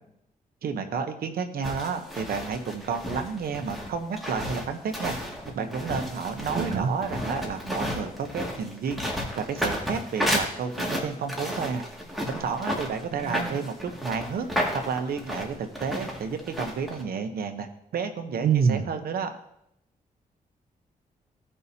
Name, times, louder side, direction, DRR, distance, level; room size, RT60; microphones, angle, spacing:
voice 1, 0.6-5.2 5.5-9.0 9.3-11.8 12.3-14.5 14.7-17.7 17.9-19.3, right 5 dB, 85° right, 7 dB, 1.0 m, -31 dB
sound 1, 1.6-17.0, equal, ahead, 2.1 m, -32 dB
voice 2, 6.5-6.9 13.2-13.5 18.4-18.8, right 6 dB, 65° right, 4 dB, 0.7 m, -24 dB
16.5 x 5.5 x 2.8 m, 0.78 s
cardioid pair, 95°, 15 cm